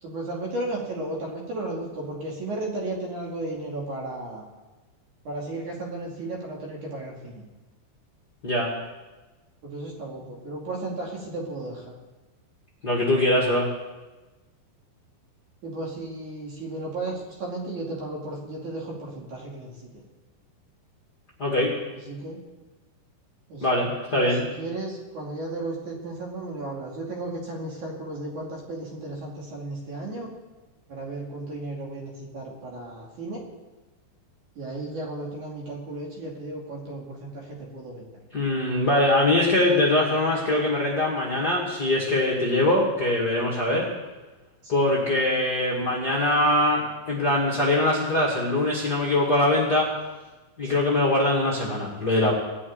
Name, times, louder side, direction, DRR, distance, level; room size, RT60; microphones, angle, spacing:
voice 1, 0.0-4.5 5.3-7.4 9.6-11.9 15.6-20.0 22.1-22.4 23.5-23.8 24.1-30.3 30.9-33.4 34.6-38.2 44.6-44.9 50.7-50.9, right 2 dB, 50° right, -2 dB, 3.5 m, -34 dB
voice 2, 12.8-13.7 21.4-21.7 23.6-24.4 38.3-43.9 44.7-49.9 50.6-52.3, left 1 dB, 35° left, -3 dB, 1.7 m, -22 dB
18.0 x 6.3 x 9.5 m, 1.2 s
omnidirectional pair, 5.0 m